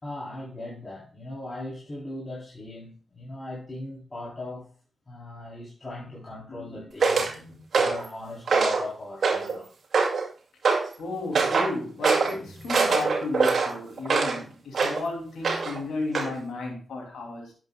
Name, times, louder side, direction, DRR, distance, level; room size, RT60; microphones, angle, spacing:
voice 1, 0.0-4.7 5.1-7.2 7.7-9.7, left 2 dB, 35° left, 3.5 m, -38 dB
voice 2, 6.5-6.8 7.2-7.6 11.0-17.5, left 3 dB, 85° left, 2.8 m, -34 dB
sound 1, 7.0-7.3 7.7-8.1 8.5-8.9 9.2-9.6 9.9-10.3 10.6-10.9 11.3-11.7 12.0-12.3 12.7-14.4 14.7-15.0 15.4-15.8 16.1-16.3, right 4 dB, 70° right, 2.2 m, -23 dB
11.5 x 8.0 x 2.3 m
cardioid pair, 55°, 0 cm